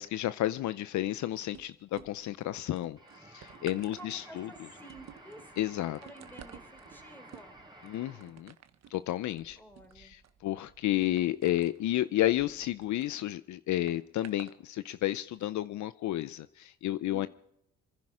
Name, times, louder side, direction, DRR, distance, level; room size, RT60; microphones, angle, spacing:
voice 1, 0.0-3.0 3.3-4.5 5.6-6.0 7.8-8.5 8.9-9.6 9.9-17.3, left 14 dB, 70° left, 14 dB, 0.6 m, -31 dB
sound 1, 1.4-2.4 2.8-13.1 13.9-14.6 15.3-15.4, right 9 dB, 60° right, 1.2 m, -53 dB
sound 2, 3.0-8.5, right 2 dB, 15° right, 4.3 m, -53 dB
voice 2, 3.9-5.5 6.0-7.5 9.6-10.2 17.1-17.3, right 1 dB, 5° left, 5 dB, 3.6 m, -51 dB
26.0 x 10.5 x 4.9 m, 0.77 s
cardioid pair, 90°, 30 cm